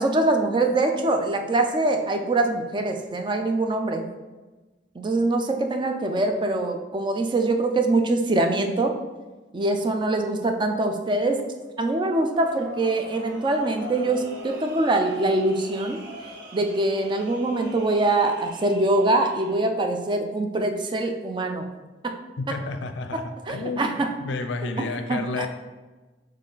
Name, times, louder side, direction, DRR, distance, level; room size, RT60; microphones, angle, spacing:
voice 1, 0.0-4.1 5.0-8.9 9.5-11.4 11.8-16.0 16.5-21.7 22.0-22.1 23.1-24.1 24.8-25.5, right 2 dB, 25° right, 5 dB, 0.3 m, -24 dB
sound 1, 12.3-19.6, equal, 80° right, 0.8 m, -42 dB
voice 2, 22.4-25.5, left 3 dB, 75° left, 7 dB, 0.4 m, -31 dB
4.2 x 3.1 x 3.9 m, 1.2 s
head